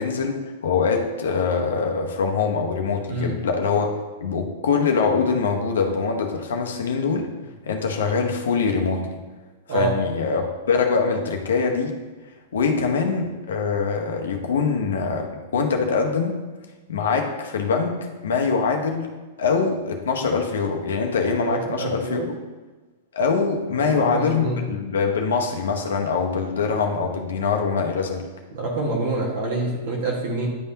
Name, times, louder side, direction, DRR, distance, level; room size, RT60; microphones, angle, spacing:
voice 1, 0.0-3.9 4.2-7.3 7.7-9.2 9.7-11.9 12.5-16.4 16.9-19.1 19.4-22.2 23.1-28.3, left 5 dB, 90° left, 2 dB, 0.8 m, -23 dB
voice 2, 21.5-22.3 23.8-24.6 28.5-30.5, right 2 dB, 70° right, -3 dB, 1.6 m, -26 dB
10.5 x 3.5 x 2.8 m, 1.3 s
hypercardioid pair, 130°, 0 cm